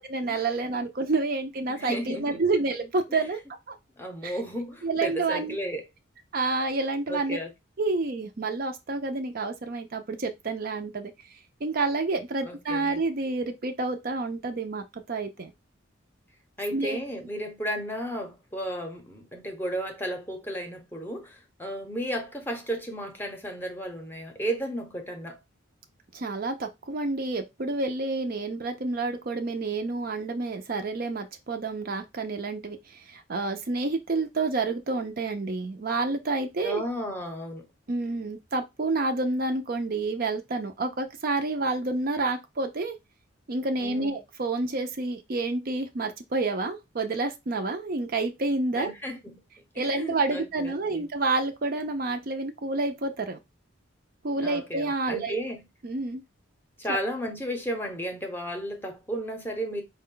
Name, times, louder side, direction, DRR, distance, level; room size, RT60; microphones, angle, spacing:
voice 1, 0.1-3.4 3.7-3.8 4.2-4.4 4.8-5.6 6.3-7.4 7.8-11.1 11.6-15.5 16.7-17.0 26.1-36.8 37.9-43.0 43.5-48.9 49.8-53.4 54.2-55.4 55.8-56.2 56.9-57.0, right 3 dB, 45° right, 0.5 m, -29 dB
voice 2, 1.7-2.4 3.1-3.2 4.0-5.8 7.1-7.5 12.4-13.0 16.6-25.4 36.6-37.6 43.8-44.2 48.8-49.4 49.7-51.1 54.4-55.6 56.8-59.8, equal, 10° left, 0.7 m, -34 dB
4.8 x 2.2 x 3.7 m
head